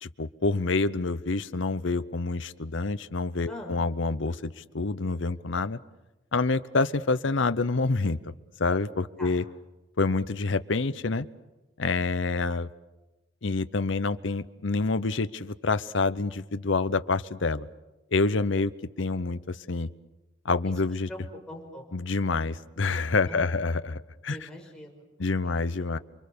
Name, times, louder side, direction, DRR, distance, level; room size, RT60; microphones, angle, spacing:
voice 1, 0.0-5.8 6.3-8.2 8.6-9.4 10.0-11.3 11.8-12.7 13.4-17.7 18.1-18.7 19.0-19.9 20.4-21.1 21.9-24.4 25.2-26.0, left 3 dB, 65° left, 13 dB, 0.8 m, -27 dB
voice 2, 3.5-3.8 9.2-9.4 19.0-19.1 20.7-20.8 21.1-21.2 21.5-21.8 23.3-23.6 24.3-25.0 25.4-25.7, left 1 dB, 5° left, -1 dB, 5.4 m, -43 dB
28.0 x 23.5 x 6.9 m, 1.1 s
head